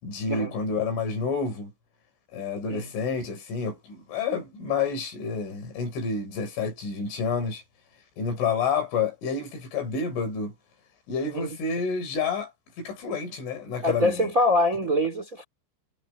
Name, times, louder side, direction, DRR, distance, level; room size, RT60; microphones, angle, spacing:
voice 1, 0.0-1.7 2.3-7.6 8.2-10.5 11.1-12.5 12.8-14.3 14.7-14.9, left 5 dB, 75° left, 8.1 m, -29 dB
voice 2, 13.8-15.4, left 1 dB, 20° right, 2.7 m, -24 dB
omnidirectional pair, 5.7 m